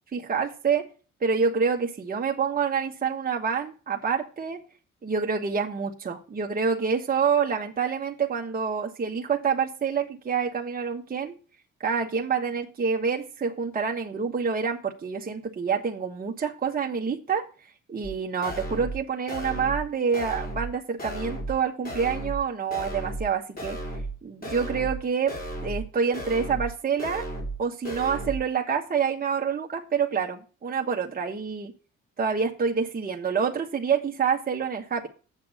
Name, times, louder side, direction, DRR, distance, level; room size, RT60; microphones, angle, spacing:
voice 1, 0.1-0.9 1.2-4.6 5.0-11.3 11.8-17.5 17.9-23.8 24.2-27.2 27.6-31.7 32.2-35.1, right 6 dB, 30° right, 1 dB, 1.3 m, -27 dB
sound 1, 18.0-18.1 18.4-19.0 19.3-19.8 20.1-20.7 21.0-21.6 21.8-22.4 22.7-23.3 23.6-24.1 24.4-25.0 25.3-25.9 26.1-26.7 27.0-27.6 27.8-28.4, right 1 dB, 30° left, 3.7 m, -34 dB
8.3 x 7.5 x 4.9 m, 0.37 s
cardioid pair, 90°, 30 cm